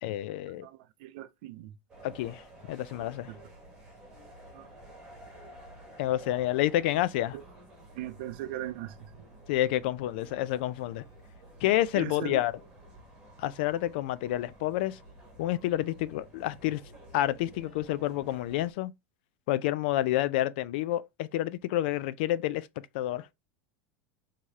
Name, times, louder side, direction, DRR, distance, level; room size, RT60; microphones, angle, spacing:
voice 1, 0.0-0.7 2.0-2.4 2.7-3.3 6.0-7.4 9.5-11.0 11.6-12.5 13.4-15.0 15.4-16.8 17.1-18.9 19.5-22.7 22.9-23.3, left 14 dB, 55° left, 0.4 m, -29 dB
voice 2, 0.6-1.7 3.3-3.4 4.5-4.7 7.3-7.4 7.9-9.2 11.9-12.4, right 13 dB, 55° right, 0.5 m, -39 dB
sound 1, 1.9-18.7, right 1 dB, 10° right, 1.6 m, -52 dB
4.7 x 2.9 x 3.5 m
supercardioid pair, 175°, 6 cm